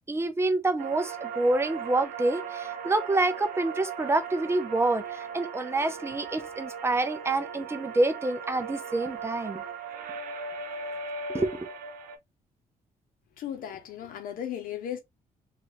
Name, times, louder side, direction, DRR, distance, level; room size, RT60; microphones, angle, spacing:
voice 1, 0.1-9.6 11.3-11.7, right 2 dB, 20° right, 0.6 m, -27 dB
sound 1, 0.8-12.2, right 5 dB, 85° right, 0.7 m, -38 dB
voice 2, 13.4-15.0, left 10 dB, 85° left, 0.9 m, -36 dB
3.1 x 2.5 x 2.7 m
cardioid pair, 105°, 14 cm